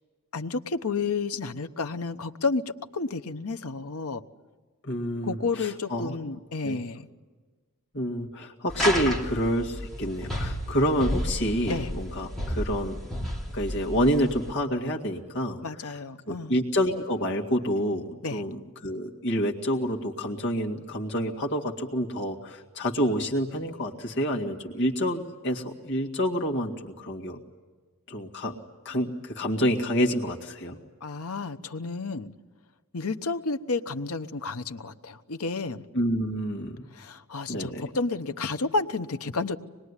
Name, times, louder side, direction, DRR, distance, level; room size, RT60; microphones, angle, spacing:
voice 1, 0.3-4.2 5.2-7.1 11.7-11.9 15.6-16.5 18.2-18.4 31.0-32.3 32.9-35.8 36.9-39.6, left 3 dB, 85° left, 9 dB, 1.0 m, -31 dB
voice 2, 4.8-6.2 6.6-6.8 7.9-13.0 13.5-27.4 28.1-28.5 28.8-30.8 35.9-36.8 37.5-37.8, equal, 55° left, 0 dB, 2.1 m, -28 dB
sound 1, 8.7-14.5, equal, ahead, 3.0 m, -32 dB
25.5 x 21.0 x 9.8 m, 1.4 s
head